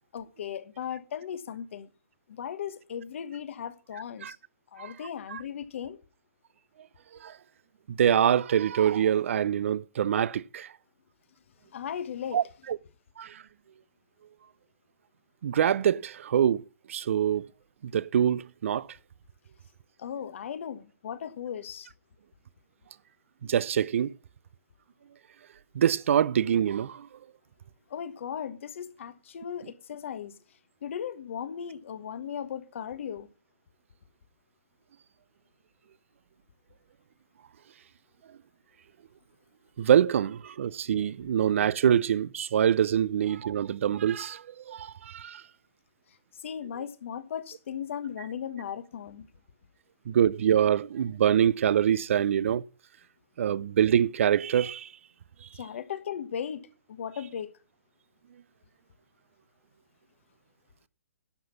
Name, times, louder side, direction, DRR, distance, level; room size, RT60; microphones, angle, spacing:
voice 1, 0.1-1.9 2.3-4.3 4.7-6.0 11.7-12.4 20.0-21.9 27.9-30.4 30.8-33.3 46.3-49.3 55.5-57.5, left 8 dB, 55° left, 1.3 m, -37 dB
voice 2, 7.9-10.7 12.3-12.8 13.2-13.4 15.4-16.6 16.9-17.5 17.8-18.9 23.4-24.1 25.7-27.1 39.8-45.4 50.1-52.6 53.4-54.9 55.4-55.5, right 9 dB, 60° right, 0.5 m, -25 dB
11.5 x 6.0 x 6.9 m
hypercardioid pair, 150°, 8 cm